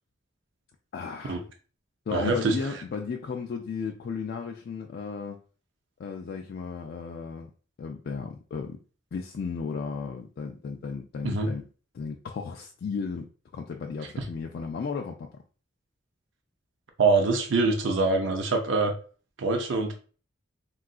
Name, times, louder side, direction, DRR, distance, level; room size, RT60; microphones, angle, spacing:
voice 1, 0.9-1.4 2.1-5.4 6.0-7.5 7.8-8.8 9.1-11.6 11.9-15.3, left 5 dB, 55° left, 0.3 m, -34 dB
voice 2, 2.1-2.6 11.2-11.5 17.0-18.9 19.4-19.9, right 3 dB, 70° right, 0.5 m, -24 dB
3.7 x 2.3 x 2.3 m
head